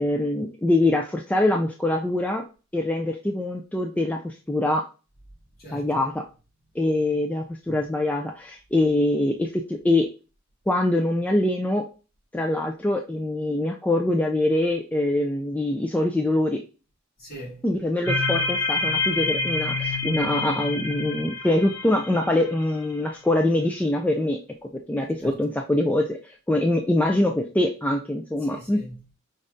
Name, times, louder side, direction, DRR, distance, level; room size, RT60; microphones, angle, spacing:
voice 1, 0.0-2.4 2.7-4.9 5.7-6.2 6.8-10.1 10.7-11.9 12.3-16.6 17.6-24.4 24.9-28.8, left 1 dB, 5° left, 0.3 m, -24 dB
voice 2, 5.6-6.1 7.6-7.9 17.2-17.7 25.2-25.6 28.4-29.2, right 1 dB, 45° left, 2.6 m, -42 dB
sound 1, 18.1-22.9, left 3 dB, 70° left, 2.4 m, -27 dB
5.3 x 3.5 x 2.6 m
head